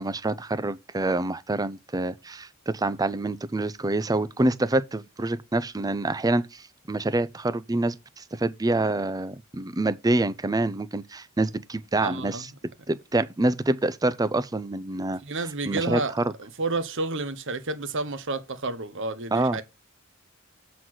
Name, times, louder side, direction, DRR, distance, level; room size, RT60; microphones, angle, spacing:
voice 1, 0.0-12.5 12.9-15.2 15.7-16.3 19.3-19.6, right 2 dB, 20° right, 0.5 m, -26 dB
voice 2, 12.0-12.4 15.2-16.1 16.4-19.6, right 3 dB, 65° right, 1.0 m, -30 dB
7.7 x 4.0 x 6.2 m
head